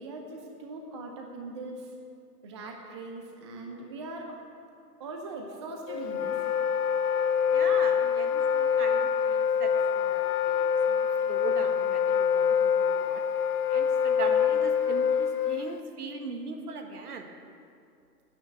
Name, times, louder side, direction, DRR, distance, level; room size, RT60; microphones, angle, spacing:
voice 1, 0.0-1.9 2.4-4.4 5.0-6.4, right 2 dB, 20° right, 2 dB, 0.6 m, -40 dB
Wind instrument woodwind instrument, 5.9-15.8, left 7 dB, 65° left, 0.7 m, -25 dB
voice 2, 7.5-13.2 13.7-17.3, right 4 dB, 65° right, 4 dB, 1.8 m, -40 dB
9.6 x 8.9 x 9.4 m, 2.5 s
hypercardioid pair, 140°, 49 cm